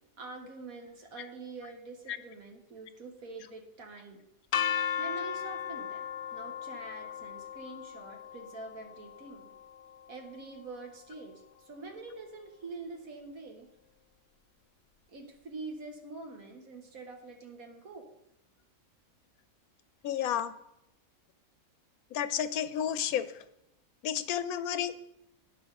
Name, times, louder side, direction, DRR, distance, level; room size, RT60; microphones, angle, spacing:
voice 1, 0.2-4.2 4.7-9.5 10.1-13.7 15.1-18.1, right 3 dB, 75° right, 3 dB, 2.0 m, -45 dB
sound 1, 4.5-10.4, left 8 dB, 60° left, 0.8 m, -36 dB
voice 2, 20.0-20.5 22.1-23.3 24.0-25.0, left 9 dB, 80° left, 13 dB, 1.2 m, -31 dB
17.5 x 5.9 x 4.1 m, 0.85 s
omnidirectional pair, 1.5 m